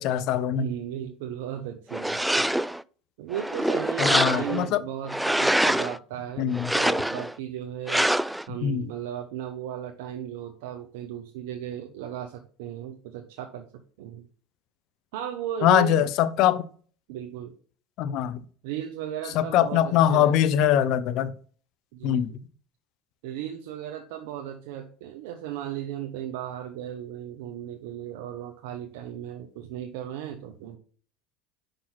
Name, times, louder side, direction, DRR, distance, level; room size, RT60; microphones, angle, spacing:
voice 1, 0.0-0.7 4.0-4.8 6.4-6.7 8.6-8.8 15.6-16.6 18.0-18.4 19.3-21.3 22.0-22.3, left 10 dB, 60° left, 0.6 m, -22 dB
voice 2, 0.5-2.4 3.2-8.1 8.5-13.7 14.0-14.3 15.1-16.0 17.1-17.5 18.6-20.3 21.9-22.4 23.2-30.8, right 10 dB, 75° right, 0.9 m, -36 dB
sound 1, 1.9-2.8 3.3-4.7 5.1-6.0 6.5-7.3 7.9-8.5, right 1 dB, 5° right, 0.3 m, -25 dB
5.7 x 5.1 x 5.8 m
supercardioid pair, 95°, 0 cm